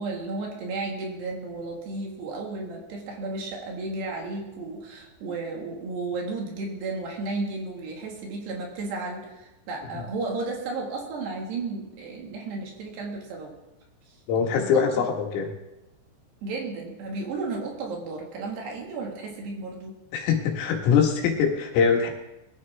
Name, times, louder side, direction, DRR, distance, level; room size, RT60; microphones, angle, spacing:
voice 1, 0.0-13.6 14.1-14.2 14.5-14.9 16.4-20.0, right 3 dB, 60° right, 0 dB, 3.9 m, -33 dB
voice 2, 14.3-15.5 20.1-22.1, left 6 dB, 85° left, 1 dB, 4.2 m, -23 dB
22.0 x 13.0 x 3.6 m, 0.97 s
omnidirectional pair, 5.7 m